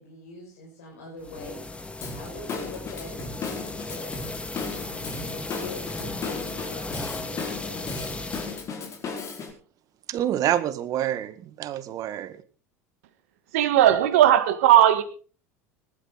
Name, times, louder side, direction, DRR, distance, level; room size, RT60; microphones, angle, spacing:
voice 1, 0.0-1.6 2.1-8.3, left 2 dB, 80° left, -2 dB, 6.1 m, -44 dB
sound 1, 1.2-8.6, left 2 dB, 15° left, 2.2 m, -36 dB
Drum kit / Drum, 2.0-9.5, left 4 dB, 40° left, 4.9 m, -36 dB
voice 2, 10.1-12.4, right 11 dB, 50° right, 13 dB, 1.8 m, -27 dB
voice 3, 13.5-15.0, right 12 dB, 75° right, 10 dB, 1.7 m, -17 dB
19.5 x 12.5 x 4.0 m, 0.38 s
hypercardioid pair, 75°, 8 cm